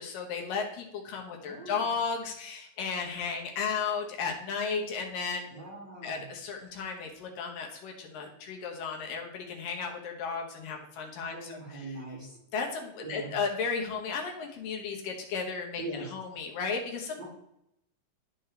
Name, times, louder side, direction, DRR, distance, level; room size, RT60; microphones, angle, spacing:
voice 1, 0.0-5.6 6.0-11.9 12.5-17.3, left 5 dB, 80° left, 1 dB, 2.9 m, -34 dB
voice 2, 1.4-1.9 5.5-6.3 11.3-12.4 13.0-13.4 15.8-16.1 17.2-17.3, right 2 dB, 35° right, -6 dB, 2.6 m, -41 dB
12.5 x 4.3 x 3.3 m, 0.80 s
omnidirectional pair, 3.9 m